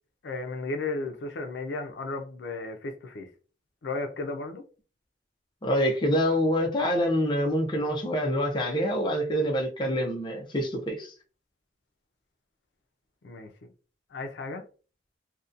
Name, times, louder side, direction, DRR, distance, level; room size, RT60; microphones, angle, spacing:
voice 1, 0.2-3.3 3.8-4.6 13.2-13.7 14.1-14.6, left 3 dB, 80° left, 0.5 m, -34 dB
voice 2, 5.6-11.1, equal, 25° left, 0.5 m, -26 dB
2.7 x 2.2 x 2.4 m
head